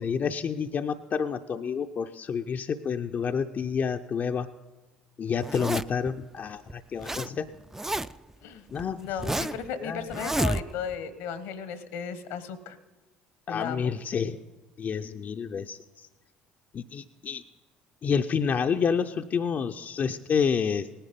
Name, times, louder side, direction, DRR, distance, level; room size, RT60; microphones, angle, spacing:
voice 1, 0.0-4.5 5.2-7.5 8.7-9.5 9.8-10.2 13.5-14.4 14.8-16.1 16.7-17.4 18.0-20.9, left 6 dB, 45° left, 6 dB, 0.5 m, -29 dB
Zipper (clothing), 5.4-6.1 6.7-7.3 7.5-8.3 8.8-9.7 10.1-10.9, right 1 dB, 10° right, 0.4 m, -30 dB
voice 2, 9.0-12.8 13.5-13.9, left 7 dB, 75° left, 14 dB, 1.0 m, -35 dB
18.0 x 10.0 x 5.2 m, 1.2 s
hypercardioid pair, 60°, 4 cm